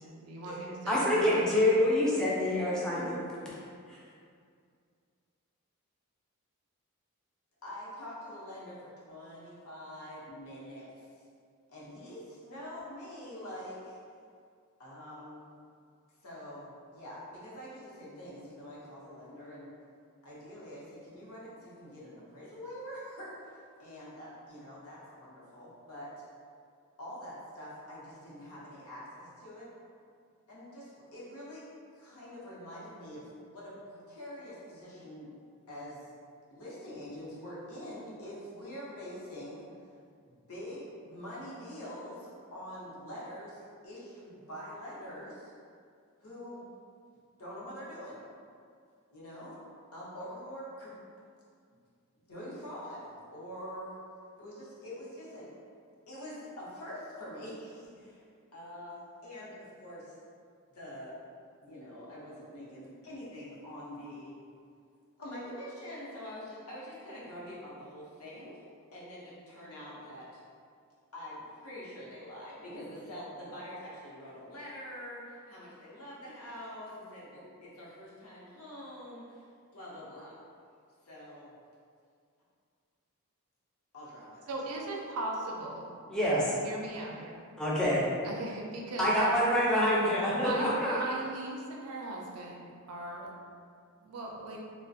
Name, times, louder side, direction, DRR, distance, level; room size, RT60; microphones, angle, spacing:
voice 1, 0.0-1.5 84.5-85.9 86.6-87.4 88.2-89.1 90.3-93.3 94.0-94.6, right 2 dB, 85° right, -1 dB, 0.4 m, -39 dB
voice 2, 0.9-3.2 3.9-4.0 86.1-86.6 87.6-88.0 89.0-91.0, left 1 dB, 5° left, -7 dB, 0.3 m, -26 dB
voice 3, 7.6-11.0 11.7-14.0 14.8-15.5 16.2-19.7 20.2-23.5 23.8-26.3 27.0-29.7 30.5-31.6 31.9-35.3 35.7-36.1 36.5-39.6 40.5-45.5 46.2-46.6 47.4-48.2 49.1-49.6 49.9-50.9 52.3-54.0 54.4-55.5 56.1-58.2 58.5-60.1 60.7-61.1 61.6-64.3 65.2-68.6 68.9-70.4 71.1-79.4 79.7-80.4 81.0-81.5 83.9-84.4 84.7-84.8, equal, 70° left, -7 dB, 0.7 m, -45 dB
2.4 x 2.1 x 2.6 m, 2.2 s
head